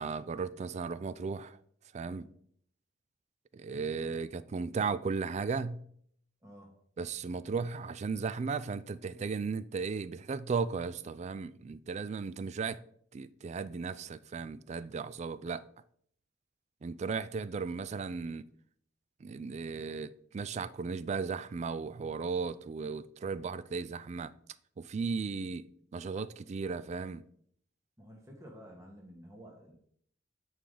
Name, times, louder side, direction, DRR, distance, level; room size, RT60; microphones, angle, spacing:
voice 1, 0.0-1.6 1.9-2.2 3.5-5.8 7.0-12.8 13.1-15.6 16.8-18.4 19.2-24.3 24.8-25.6 25.9-27.2, right 5 dB, 35° right, 0.3 m, -36 dB
voice 2, 6.4-6.7 28.0-29.7, equal, 15° right, 1.2 m, -51 dB
8.7 x 4.8 x 3.8 m
head